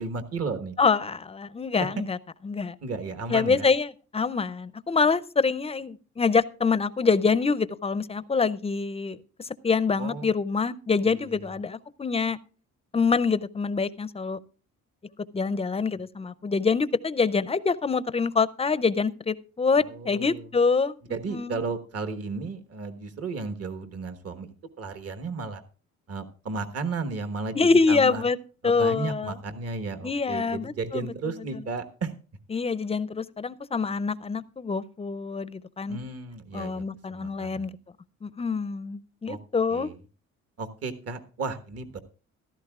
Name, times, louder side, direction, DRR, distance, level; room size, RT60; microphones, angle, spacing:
voice 1, 0.0-0.8 1.8-1.9 2.8-3.7 10.0-10.3 11.0-11.5 19.8-20.5 21.1-25.6 26.1-28.2 28.6-32.1 35.9-36.8 37.1-37.7 39.3-39.4 39.7-40.0 40.6-42.0, right 4 dB, 55° right, 8 dB, 1.4 m, -34 dB
voice 2, 0.8-2.2 2.4-2.8 3.3-9.2 9.6-12.4 12.9-14.4 15.3-20.9 21.3-21.7 27.5-28.4 28.6-29.3 30.0-31.1 32.5-36.0 36.5-37.7 38.2-39.9, left 4 dB, 20° left, 16 dB, 0.5 m, -25 dB
15.0 x 13.0 x 2.4 m, 0.37 s
cardioid pair, 90°, 30 cm